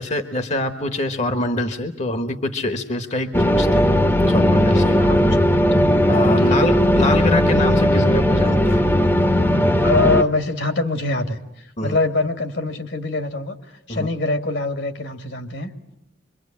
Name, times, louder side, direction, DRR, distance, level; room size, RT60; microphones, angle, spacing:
voice 1, 0.0-3.9 4.3-5.0 6.1-8.8 11.8-12.0 13.9-14.1, left 1 dB, 40° left, 8 dB, 1.2 m, -24 dB
sound 1, 3.3-10.2, equal, 10° left, 1.0 m, -17 dB
voice 2, 4.9-5.5 6.4-6.7 9.8-11.4 11.8-13.6 13.9-15.7, left 2 dB, 70° left, 8 dB, 2.2 m, -23 dB
25.5 x 23.5 x 8.7 m, 0.85 s
head